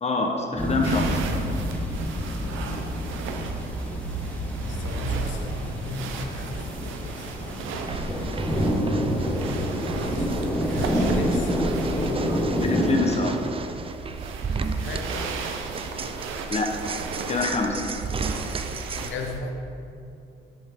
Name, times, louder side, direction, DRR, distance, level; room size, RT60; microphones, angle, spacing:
voice 1, 0.0-1.2 12.6-13.4 16.5-16.7 17.3-17.8, left 3 dB, 35° left, 2 dB, 1.0 m, -25 dB
sound 1, 0.6-13.0, equal, 5° left, 1.3 m, -28 dB
sound 2, 0.8-19.4, right 4 dB, 90° right, 0.7 m, -36 dB
voice 2, 4.7-7.4 9.9-11.6 14.7-15.4 19.0-19.6, left 3 dB, 70° left, 2 dB, 1.1 m, -37 dB
sound 3, 7.7-19.1, right 4 dB, 30° right, 0.4 m, -34 dB
11.0 x 5.2 x 3.7 m, 2.6 s
cardioid pair, 90°, 20 cm